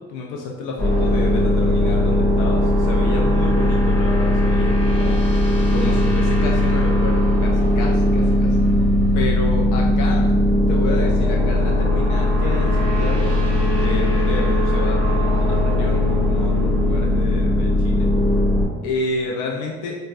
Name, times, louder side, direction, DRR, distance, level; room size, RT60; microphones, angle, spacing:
voice 1, 0.0-8.8 9.1-10.3 10.7-13.4 13.8-18.1 18.8-20.0, left 3 dB, 85° left, -1 dB, 0.5 m, -30 dB
sound 1, 0.8-18.7, left 1 dB, 50° left, 1.1 m, -18 dB
4.2 x 2.1 x 2.4 m, 1.2 s
cardioid pair, 90°, 30 cm